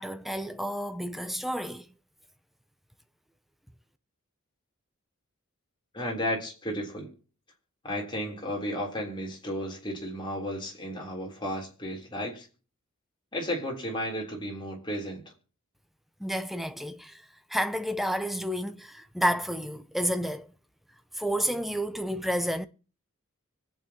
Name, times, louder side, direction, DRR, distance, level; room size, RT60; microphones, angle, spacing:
voice 1, 0.0-1.9 16.2-17.2 17.5-20.5 21.1-22.7, equal, ahead, 0.6 m, -30 dB
voice 2, 5.9-7.1 7.8-12.5 13.3-15.2, equal, 25° left, 3.5 m, -33 dB
25.0 x 8.6 x 2.9 m
head